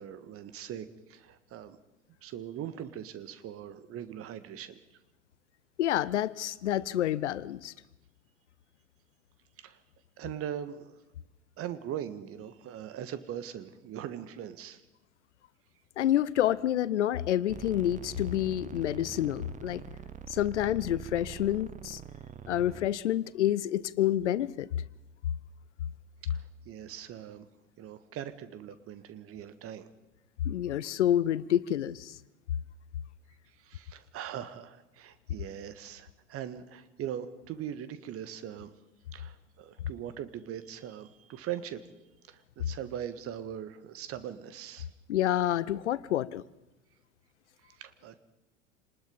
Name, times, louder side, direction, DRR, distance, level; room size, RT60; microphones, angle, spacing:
voice 1, 0.0-1.8 2.2-4.8 9.6-9.8 10.2-10.9 11.6-14.8 26.3-27.5 27.8-29.9 33.5-38.7 39.1-41.9 42.3-44.9 47.6-48.2, right 10 dB, 40° right, 13 dB, 1.7 m, -41 dB
voice 2, 5.8-7.7 16.0-19.8 20.3-22.0 22.5-24.7 30.4-32.2 45.1-46.4, left 12 dB, 70° left, 20 dB, 0.9 m, -28 dB
sound 1, 17.5-22.9, right 8 dB, 20° right, 1.1 m, -44 dB
26.5 x 20.0 x 5.4 m, 0.95 s
figure-of-eight pair, 75°, 37 cm